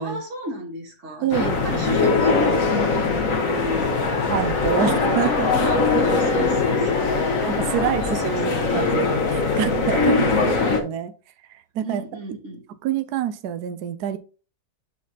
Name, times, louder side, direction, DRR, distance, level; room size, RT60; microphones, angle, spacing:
voice 1, 0.0-4.3 4.7-4.9 5.2-7.3 7.7-8.9 9.7-10.5 11.8-12.7, equal, 50° right, 2.8 m, -34 dB
voice 2, 1.2-1.9 4.3-5.5 6.8-7.0 7.4-11.1 11.7-12.0 12.8-14.2, right 9 dB, 75° right, 1.2 m, -27 dB
sound 1, 1.3-10.8, left 4 dB, 55° left, 1.8 m, -21 dB
8.2 x 4.8 x 4.0 m
omnidirectional pair, 1.7 m